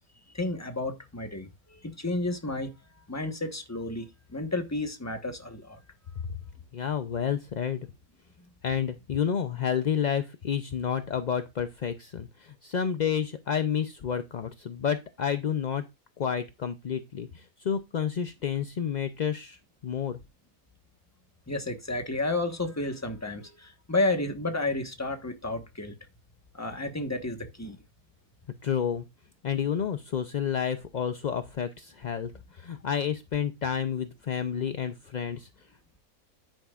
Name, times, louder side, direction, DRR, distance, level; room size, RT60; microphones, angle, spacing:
voice 1, 0.3-2.7 3.1-4.1 4.3-5.8 21.5-25.9 26.5-27.8, left 2 dB, 10° left, 1.2 m, -31 dB
voice 2, 6.7-7.9 8.6-15.8 16.2-20.2 28.6-29.1 29.4-35.5, left 8 dB, 50° left, 0.5 m, -30 dB
10.0 x 8.9 x 2.4 m
omnidirectional pair, 1.5 m